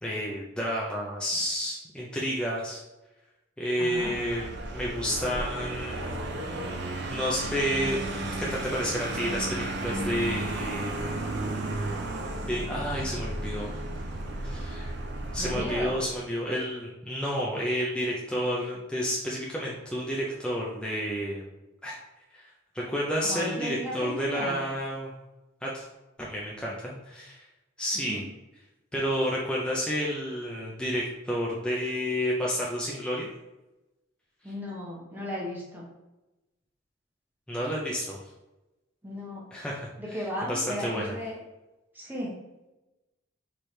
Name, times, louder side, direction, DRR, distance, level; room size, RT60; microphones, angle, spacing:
voice 1, 0.0-2.8 3.6-6.1 7.1-11.1 12.5-13.7 14.4-14.9 15.3-21.5 21.8-22.0 22.3-22.5 22.7-25.1 25.6-25.9 26.2-27.4 27.8-28.2 28.9-33.3 37.5-38.2 39.5-41.1, equal, 5° left, -5 dB, 0.5 m, -30 dB
voice 2, 3.8-4.1 15.4-16.0 23.2-24.6 27.9-28.2 34.4-35.8 39.0-39.4 40.0-41.3 41.9-42.3, equal, 10° right, -4 dB, 0.9 m, -35 dB
Vehicle, 3.9-16.2, right 2 dB, 60° right, 0.6 m, -34 dB
4.4 x 3.2 x 3.2 m, 1.0 s
head